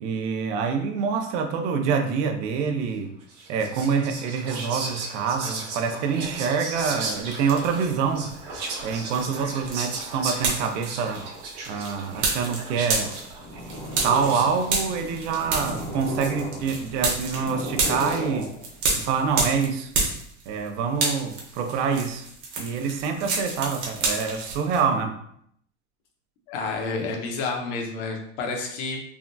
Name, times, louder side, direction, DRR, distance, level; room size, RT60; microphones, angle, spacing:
voice 1, 0.0-3.1 3.5-8.3 8.8-11.3 11.7-13.2 14.0-18.5 19.0-19.9 20.5-22.3 22.6-25.2, right 6 dB, 80° right, 6 dB, 0.6 m, -26 dB
Whispering, 3.3-14.7, right 3 dB, 60° right, 1.0 m, -36 dB
sound 1, 6.8-7.9 8.3-20.7 20.9-24.8, right 3 dB, 35° right, 0.7 m, -30 dB
Purr, 13.3-19.0, left 1 dB, 15° left, 0.4 m, -35 dB
voice 2, 26.5-29.0, left 3 dB, 75° left, 2 dB, 0.8 m, -30 dB
3.4 x 2.2 x 2.5 m, 0.69 s
cardioid pair, 170°, 35 cm